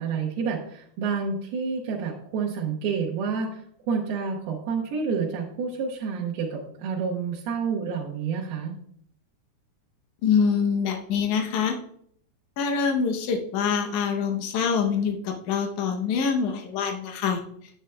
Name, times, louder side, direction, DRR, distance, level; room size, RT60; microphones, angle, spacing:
voice 1, 0.0-3.6 3.9-8.7, right 5 dB, 80° right, -5 dB, 2.9 m, -29 dB
voice 2, 10.2-11.8 12.6-17.4, left 6 dB, 80° left, 3 dB, 1.7 m, -25 dB
9.9 x 8.4 x 2.2 m, 0.67 s
omnidirectional pair, 4.6 m